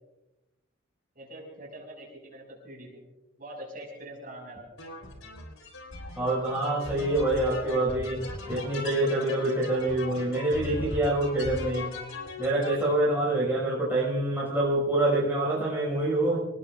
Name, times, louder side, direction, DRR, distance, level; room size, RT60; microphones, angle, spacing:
voice 1, 1.1-3.0 3.4-4.7, right 1 dB, 40° right, -1 dB, 5.8 m, -44 dB
sound 1, 4.8-13.0, left 1 dB, 80° left, 3.8 m, -39 dB
voice 2, 6.2-11.9 12.4-16.4, right 1 dB, 10° right, -6 dB, 5.6 m, -26 dB
27.0 x 18.5 x 2.4 m, 1.0 s
head